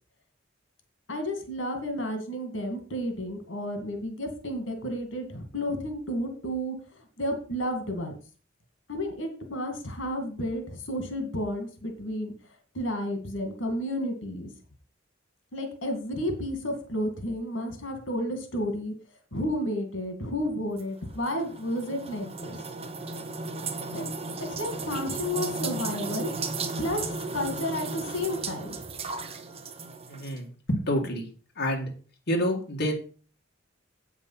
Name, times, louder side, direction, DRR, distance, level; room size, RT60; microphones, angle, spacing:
voice 1, 1.1-8.2 8.9-12.3 12.7-14.5 15.5-18.9 19.3-22.6 23.9-24.1 24.5-26.5 26.8-27.1 27.3-28.8, equal, 90° left, 5 dB, 2.3 m, -32 dB
sound 1, 20.8-30.4, right 3 dB, 30° right, 1.1 m, -35 dB
voice 2, 30.1-31.3 31.6-31.9 32.3-32.9, equal, 60° left, 1 dB, 2.1 m, -28 dB
8.5 x 7.3 x 5.7 m, 0.40 s
head